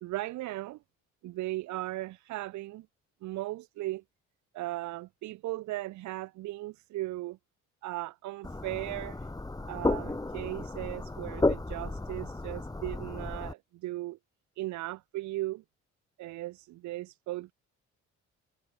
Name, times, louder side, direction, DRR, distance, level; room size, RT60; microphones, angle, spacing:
voice 1, 0.0-0.8 1.2-2.9 3.2-4.0 4.5-7.4 7.8-9.3 9.7-14.2 14.6-15.6 16.2-17.5, right 17 dB, 75° right, 0.5 m, -37 dB
sound 1, 8.4-13.5, left 2 dB, 10° left, 1.5 m, -33 dB
cardioid pair, 90°, 30 cm